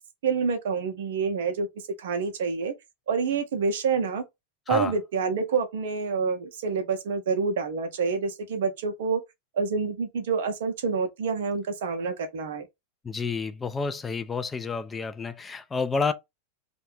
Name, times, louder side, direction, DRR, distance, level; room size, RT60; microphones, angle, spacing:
voice 1, 0.2-1.7 2.0-2.7 3.1-4.2 4.7-9.2 9.5-12.7, right 5 dB, 55° right, 0.5 m, -27 dB
voice 2, 13.0-16.1, left 4 dB, 15° left, 0.3 m, -29 dB
2.6 x 2.2 x 3.1 m
figure-of-eight pair, 90°, 0 cm